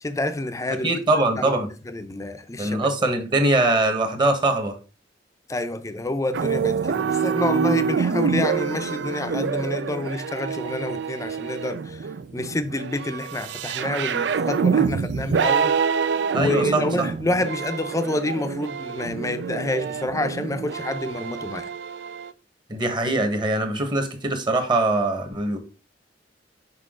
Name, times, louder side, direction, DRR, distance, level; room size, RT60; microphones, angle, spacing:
voice 1, 0.0-0.9 1.4-2.9 5.5-12.1 12.3-15.8 16.3-21.7, left 2 dB, 20° left, 0.6 m, -28 dB
voice 2, 0.8-1.7 2.6-4.7 16.3-17.1 22.7-25.6, right 2 dB, 25° right, 1.2 m, -22 dB
sound 1, 6.3-22.3, right 6 dB, 75° right, 0.4 m, -26 dB
6.0 x 5.4 x 3.7 m
head